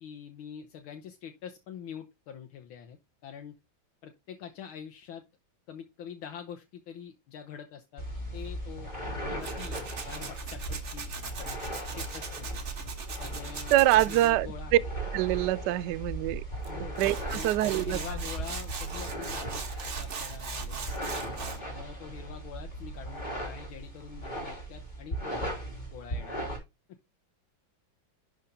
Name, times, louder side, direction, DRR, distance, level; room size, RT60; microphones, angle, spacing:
voice 1, 0.0-3.0 3.2-3.6 4.0-5.2 5.7-8.0 8.3-8.9 9.3-12.6 13.2-14.8 16.7-17.0 17.3-21.0 21.6-25.5 25.9-26.6, left 8 dB, 80° left, 1.7 m, -45 dB
sound 1, 8.0-26.6, right 1 dB, 20° left, 3.4 m, -37 dB
Tools, 9.4-14.3 16.6-16.7 17.0-21.6, right 5 dB, 40° right, 1.3 m, -40 dB
voice 2, 13.7-14.5 15.1-16.4 17.0-18.0, right 15 dB, 70° right, 1.0 m, -25 dB
11.0 x 4.4 x 3.9 m
omnidirectional pair, 2.2 m